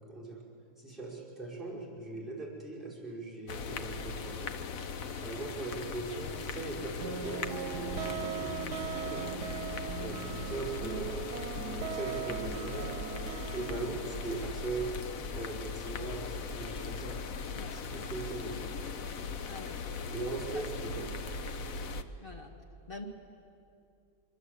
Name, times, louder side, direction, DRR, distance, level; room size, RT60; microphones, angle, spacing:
voice 1, 0.8-4.3 5.2-9.5 10.0-11.1 11.8-12.9 13.5-14.9 15.3-17.2 17.7-18.7 20.1-21.1, right 3 dB, ahead, -6 dB, 4.8 m, -40 dB
sound 1, 3.5-22.0, left 4 dB, 60° left, 1.3 m, -39 dB
sound 2, 7.0-14.6, right 8 dB, 80° right, 1.4 m, -39 dB
voice 2, 19.5-19.9 20.5-20.6 22.2-22.5 22.9-23.1, left 3 dB, 35° left, 2 dB, 2.4 m, -45 dB
24.5 x 24.0 x 8.1 m, 2.6 s
omnidirectional pair, 1.7 m